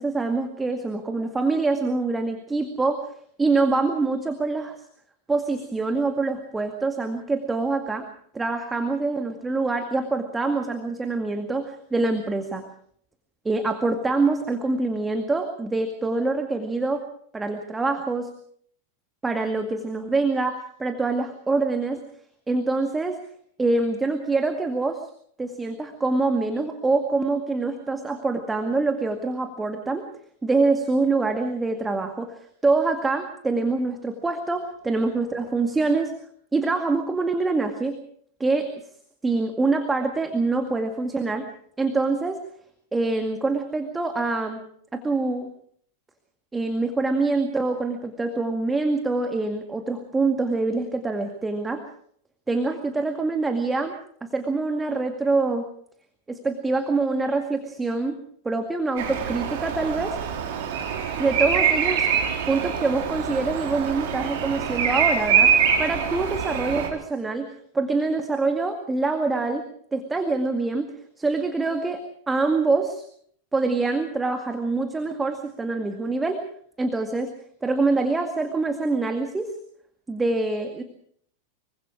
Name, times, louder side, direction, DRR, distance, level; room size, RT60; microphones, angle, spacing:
voice 1, 0.0-3.1 3.4-4.8 5.3-8.1 8.3-12.6 13.4-17.0 17.3-18.3 19.2-22.0 22.5-23.2 23.6-25.1 25.4-30.0 30.4-36.1 36.5-38.0 38.4-38.7 39.2-41.5 41.8-42.4 42.9-44.6 44.9-45.5 46.5-51.8 52.5-53.9 54.2-55.7 56.3-58.2 58.4-60.2 61.2-62.1 62.5-65.5 65.8-67.5 67.7-69.7 69.9-70.9 71.2-72.0 72.3-73.0 73.5-76.4 76.8-77.3 77.6-79.5 80.1-80.8, right 3 dB, 10° right, 6 dB, 2.1 m, -25 dB
Bird vocalization bird call bird song, 59.0-66.9, right 7 dB, 55° right, 4.8 m, -24 dB
25.5 x 23.5 x 4.9 m, 0.63 s
figure-of-eight pair, 90°, 0 cm